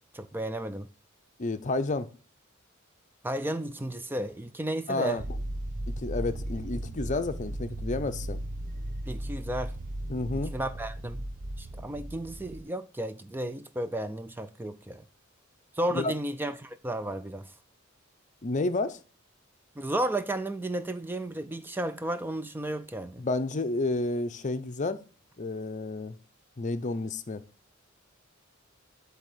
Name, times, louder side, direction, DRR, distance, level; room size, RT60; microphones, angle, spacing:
voice 1, 0.1-0.9 3.2-5.2 9.1-9.7 10.5-11.2 11.6-15.0 15.7-17.5 19.8-23.2, right 1 dB, 10° right, 0.4 m, -33 dB
voice 2, 1.4-2.1 4.9-5.2 5.9-8.4 10.1-10.6 15.9-16.1 18.4-19.0 23.2-25.0 25.4-26.2 26.6-27.4, left 2 dB, 35° left, 0.6 m, -30 dB
sound 1, 5.2-12.6, right 1 dB, 40° right, 0.7 m, -36 dB
8.1 x 3.5 x 6.6 m
head